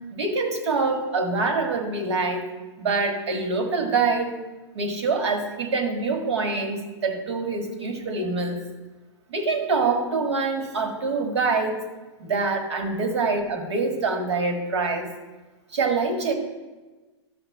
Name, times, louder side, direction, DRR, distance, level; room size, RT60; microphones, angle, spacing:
voice 1, 0.1-2.5 2.8-4.4 4.7-8.6 9.3-11.8 12.2-15.1 15.7-16.3, right 4 dB, 70° right, 4 dB, 1.8 m, -25 dB
13.0 x 7.0 x 3.6 m, 1.2 s
hypercardioid pair, 180°, 15 cm